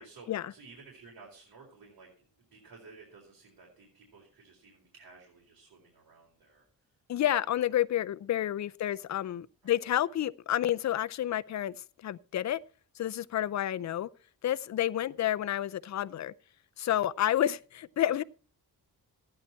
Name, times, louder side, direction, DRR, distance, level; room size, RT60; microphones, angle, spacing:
voice 1, 0.0-2.1 2.5-6.7 8.8-9.0 9.6-10.0 16.9-17.1, right 4 dB, 85° right, 4.3 m, -54 dB
voice 2, 7.1-12.6 13.0-14.1 14.4-16.3 16.8-18.2, left 12 dB, 50° left, 0.5 m, -30 dB
14.5 x 9.7 x 4.4 m
wide cardioid pair, 175°, 38 cm